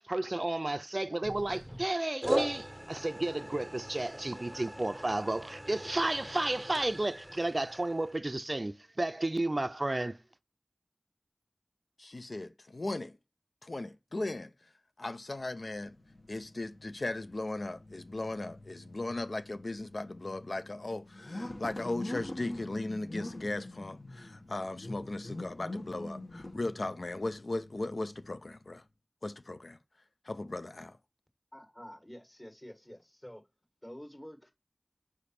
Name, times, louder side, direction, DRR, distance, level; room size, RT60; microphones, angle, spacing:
voice 1, 0.1-10.2, right 2 dB, 55° right, 0.4 m, -32 dB
sound 1, 1.2-1.9 2.2-8.2, equal, 5° right, 0.7 m, -39 dB
voice 2, 12.0-13.2 13.6-14.5 15.0-15.9 16.3-28.8 29.2-29.8 30.2-31.0, left 2 dB, 90° left, 0.4 m, -37 dB
sound 2, 15.5-28.7, left 1 dB, 60° left, 1.0 m, -45 dB
voice 3, 31.5-33.4 33.8-34.5, equal, 25° left, 1.5 m, -48 dB
5.0 x 5.0 x 4.2 m
wide cardioid pair, 45°, 0 cm